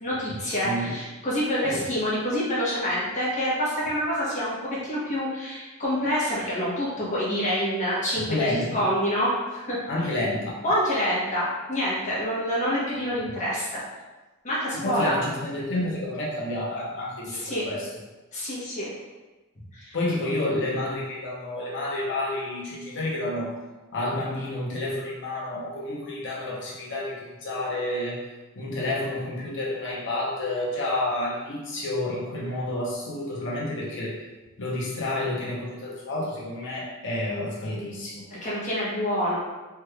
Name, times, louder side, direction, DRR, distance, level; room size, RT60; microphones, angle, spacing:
voice 1, 0.0-9.8 10.6-13.8 14.4-15.1 17.3-17.7 18.3-18.9 19.7-20.0 38.3-39.4, equal, 35° left, -7 dB, 1.0 m, -27 dB
voice 2, 0.6-1.0 1.6-1.8 8.3-8.9 9.9-10.5 14.7-17.9 19.9-23.6 23.9-28.2 28.6-34.2 34.6-38.2, left 1 dB, 60° left, -5 dB, 0.8 m, -29 dB
3.4 x 3.1 x 2.3 m, 1.2 s
head